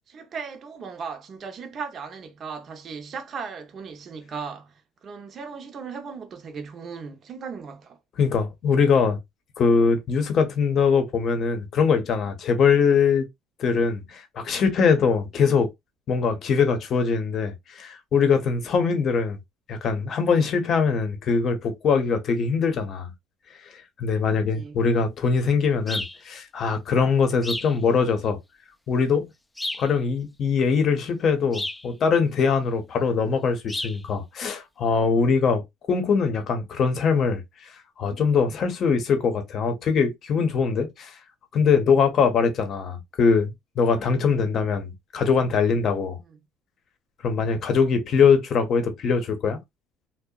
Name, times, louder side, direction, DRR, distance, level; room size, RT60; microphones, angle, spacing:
voice 1, 0.1-8.0 24.3-24.8 46.3-46.4, right 5 dB, 45° right, 0.6 m, -37 dB
voice 2, 8.2-9.2 9.6-13.3 13.6-15.7 16.1-19.4 19.7-23.1 24.0-28.4 28.9-29.2 29.8-37.4 38.0-41.1 41.5-46.2 47.2-49.6, left 5 dB, 50° left, 0.7 m, -22 dB
sound 1, 25.9-26.2 27.4-27.8 29.6-29.9 31.5-31.9 33.7-34.0, left 2 dB, 10° left, 0.3 m, -31 dB
2.7 x 2.1 x 2.2 m
cardioid pair, 100°, 0 cm